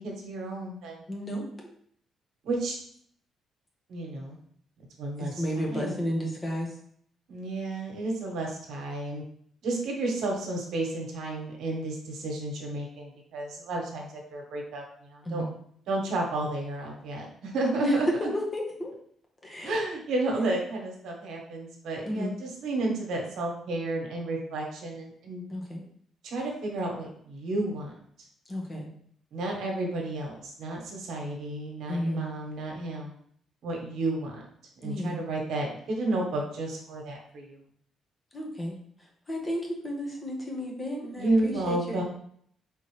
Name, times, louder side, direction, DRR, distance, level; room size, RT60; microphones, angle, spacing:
voice 1, 0.0-1.0 2.4-2.8 3.9-4.4 5.0-5.9 7.3-9.2 9.6-15.4 15.9-18.3 19.6-25.4 26.2-27.9 29.3-33.1 33.6-34.4 34.8-37.6 41.2-42.0, right 2 dB, 75° right, 0 dB, 1.2 m, -32 dB
voice 2, 1.1-1.4 5.2-6.7 15.2-15.5 17.8-18.0 18.3-18.9 19.4-19.7 20.4-20.5 22.0-22.3 25.5-25.8 28.5-28.9 31.9-32.2 34.8-35.2 38.3-38.8 39.3-42.0, equal, 30° left, -1 dB, 1.3 m, -32 dB
4.3 x 3.6 x 3.2 m, 0.64 s
cardioid pair, 90°, 0 cm